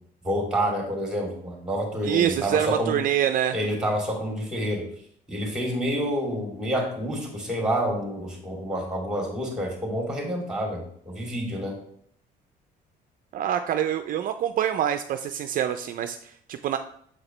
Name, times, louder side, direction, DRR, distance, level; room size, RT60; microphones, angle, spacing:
voice 1, 0.2-2.9 3.5-4.9 5.3-11.8, equal, 5° right, 0 dB, 2.6 m, -28 dB
voice 2, 2.0-3.6 13.3-16.8, right 10 dB, 55° right, 8 dB, 0.4 m, -25 dB
7.3 x 4.9 x 3.2 m, 0.66 s
cardioid pair, 110°, 17 cm